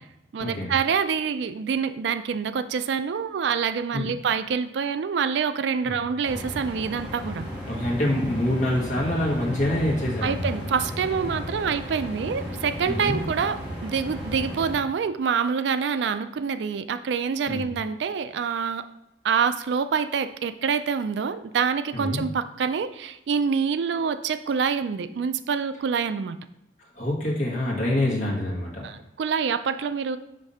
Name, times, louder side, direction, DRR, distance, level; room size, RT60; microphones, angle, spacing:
voice 1, 0.3-7.5 10.2-18.8 19.2-26.4 28.8-30.2, right 6 dB, 75° right, 12 dB, 0.3 m, -26 dB
sound 1, 6.2-14.7, equal, 10° right, 1.8 m, -34 dB
voice 2, 7.7-10.5 12.9-13.2 17.5-17.6 21.9-22.2 26.9-28.9, left 1 dB, 40° left, -3 dB, 1.6 m, -26 dB
5.3 x 3.5 x 5.5 m, 0.88 s
head